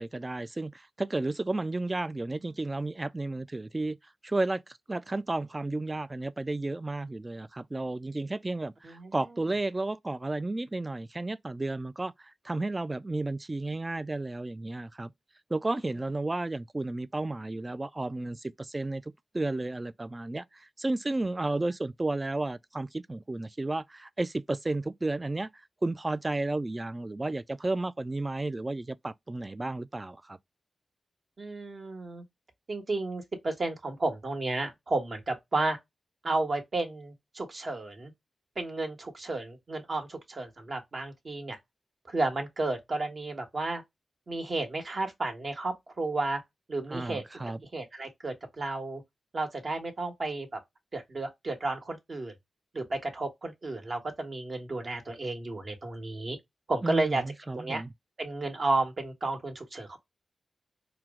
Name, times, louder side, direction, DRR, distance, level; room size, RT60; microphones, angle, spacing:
voice 1, 0.0-4.0 4.2-12.1 12.4-15.1 15.5-19.0 19.3-25.5 25.8-30.4 46.9-47.6 56.8-57.9, right 2 dB, 30° right, 0.3 m, -32 dB
voice 2, 8.8-9.2 31.4-32.2 32.7-35.8 36.2-38.1 38.6-41.6 42.1-43.8 44.3-46.4 46.7-47.2 47.7-49.0 49.3-50.6 50.9-52.3 52.7-56.4 56.7-57.2 57.5-57.8 58.2-60.0, right 2 dB, 55° right, 1.2 m, -32 dB
4.5 x 2.1 x 3.6 m
cardioid pair, 55°, 0 cm